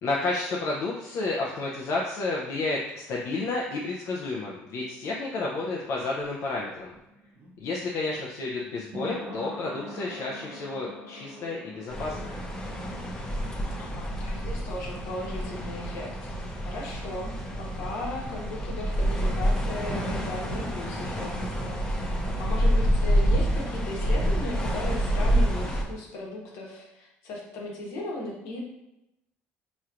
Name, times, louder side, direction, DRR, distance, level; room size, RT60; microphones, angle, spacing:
voice 1, 0.0-6.9 7.6-12.4, left 3 dB, 60° left, -3 dB, 0.6 m, -31 dB
sound 1, 6.8-17.4 17.6-17.7, left 1 dB, 40° right, 0.8 m, -45 dB
sound 2, 11.9-25.8, equal, 15° left, 0.7 m, -28 dB
voice 2, 13.8-16.3 16.6-22.0 22.4-28.6, left 1 dB, 75° left, -2 dB, 1.1 m, -37 dB
4.3 x 3.1 x 2.5 m, 0.89 s
cardioid pair, 100°, 5 cm